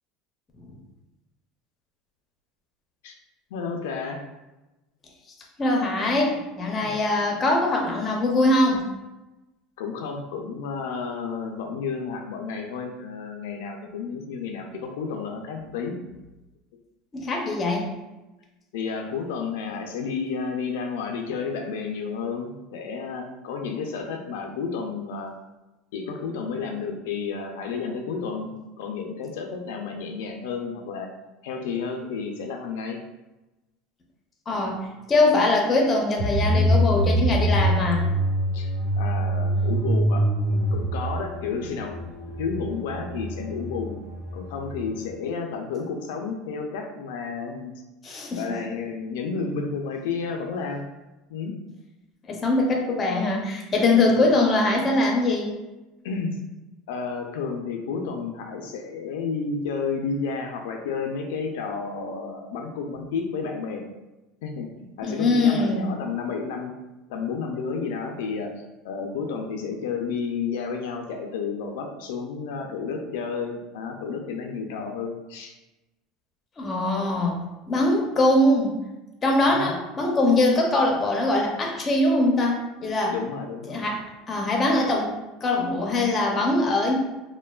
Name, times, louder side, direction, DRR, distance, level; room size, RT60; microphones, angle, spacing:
voice 1, 3.5-4.2 6.8-7.0 9.8-16.0 18.7-25.3 25.9-28.5 28.8-31.1 31.4-33.0 38.5-38.7 39.0-42.0 42.4-44.0 44.3-47.7 48.3-50.8 51.3-51.5 54.1-54.3 56.0-56.3 56.9-63.8 64.4-66.7 67.1-68.5 68.8-75.5 79.5-79.7 83.1-83.8, left 5 dB, 85° left, 3 dB, 0.3 m, -31 dB
voice 2, 5.6-8.9 17.1-17.9 34.5-38.0 48.0-48.6 52.3-55.5 65.0-65.9 76.6-77.4 77.7-78.8 79.2-83.2 83.7-85.1 85.4-86.9, left 2 dB, 25° left, 0 dB, 0.5 m, -22 dB
sound 1, 36.2-45.0, right 1 dB, 55° right, 1.4 m, -25 dB
3.1 x 2.1 x 2.2 m, 1.0 s
supercardioid pair, 140°, 0 cm